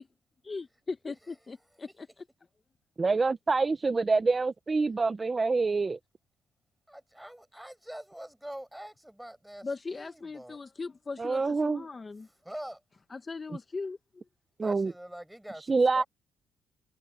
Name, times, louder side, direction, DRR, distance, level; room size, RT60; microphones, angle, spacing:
voice 1, 0.5-2.1 9.6-12.2 13.1-14.0, left 4 dB, 30° left, 1.2 m, -39 dB
voice 2, 3.0-6.0 11.2-11.9 14.6-14.9 15.7-16.0, right 4 dB, 30° right, 1.0 m, -26 dB
voice 3, 6.9-10.6 12.4-12.8 14.6-15.6 15.9-16.0, right 1 dB, 5° right, 6.8 m, -44 dB
cardioid pair, 90°, 0 cm